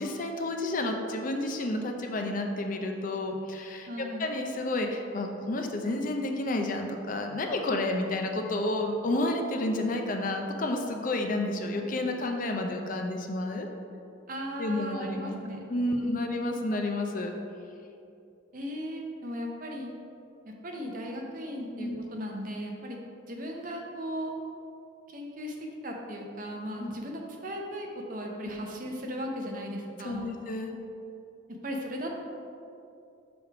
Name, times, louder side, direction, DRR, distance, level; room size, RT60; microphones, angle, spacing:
voice 1, 0.0-13.7 14.6-15.3 15.7-17.3 21.8-22.0 26.8-26.9 30.0-30.8, left 2 dB, 40° left, 4 dB, 0.4 m, -30 dB
voice 2, 3.9-4.3 14.3-15.6 15.9-16.1 18.5-19.9 20.5-23.0 23.3-24.3 25.1-25.6 25.8-30.3 31.6-32.2, equal, 45° right, 1 dB, 0.7 m, -37 dB
6.4 x 3.4 x 4.6 m, 2.6 s
head